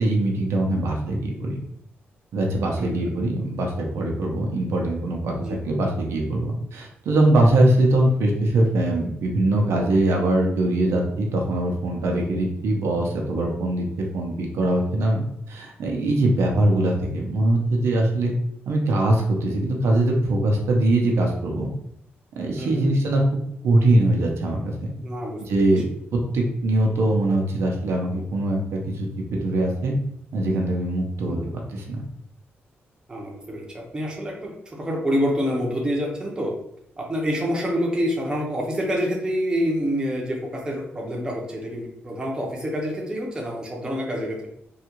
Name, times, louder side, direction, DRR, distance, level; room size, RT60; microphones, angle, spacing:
voice 1, 0.0-1.6 2.3-5.3 5.6-18.3 18.7-21.7 22.4-24.9 25.4-25.8 26.1-30.0 30.3-32.0, right 1 dB, 90° right, 0 dB, 0.6 m, -22 dB
voice 2, 2.8-3.1 5.4-5.6 22.6-22.9 25.0-25.7 31.2-31.6 33.1-36.5 37.0-44.5, equal, 20° right, -1 dB, 0.7 m, -27 dB
3.5 x 2.4 x 2.9 m, 0.73 s
wide cardioid pair, 155°, 4 cm